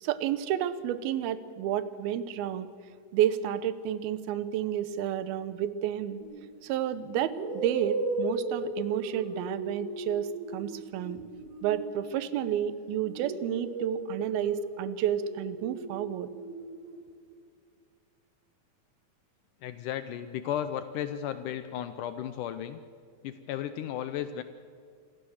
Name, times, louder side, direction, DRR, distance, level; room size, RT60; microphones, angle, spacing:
voice 1, 0.0-2.7 3.1-6.2 6.6-11.2 11.6-16.3, right 10 dB, 85° right, 15 dB, 2.7 m, -31 dB
sound 1, 6.2-6.5 7.3-12.6 13.0-17.0, right 2 dB, 60° right, 4.7 m, -36 dB
voice 2, 19.6-22.8 23.2-24.4, left 10 dB, 80° left, 11 dB, 1.9 m, -34 dB
26.0 x 14.5 x 7.1 m, 2.3 s
omnidirectional pair, 4.3 m